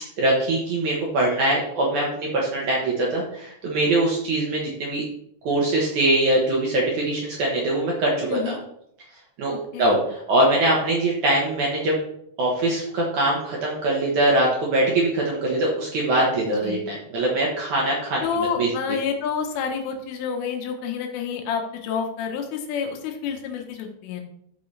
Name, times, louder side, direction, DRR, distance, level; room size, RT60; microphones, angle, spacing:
voice 1, 0.2-5.0 5.4-8.5 9.4-11.9 12.4-18.2 18.6-18.7, right 1 dB, 80° right, -3 dB, 1.7 m, -22 dB
voice 2, 8.3-8.6 9.7-10.0 16.5-16.8 18.2-24.2, left 6 dB, 80° left, 3 dB, 3.6 m, -28 dB
13.0 x 5.8 x 3.3 m, 0.74 s
omnidirectional pair, 5.7 m